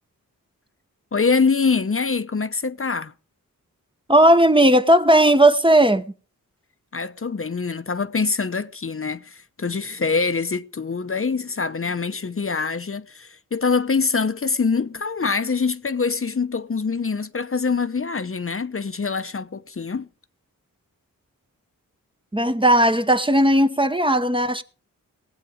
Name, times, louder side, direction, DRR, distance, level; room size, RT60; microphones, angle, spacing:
voice 1, 1.1-3.1 6.9-20.1, left 4 dB, 40° left, 0.8 m, -24 dB
voice 2, 4.1-6.0 22.3-24.6, right 1 dB, 15° right, 0.9 m, -16 dB
19.5 x 8.3 x 5.0 m
wide cardioid pair, 65°, 34 cm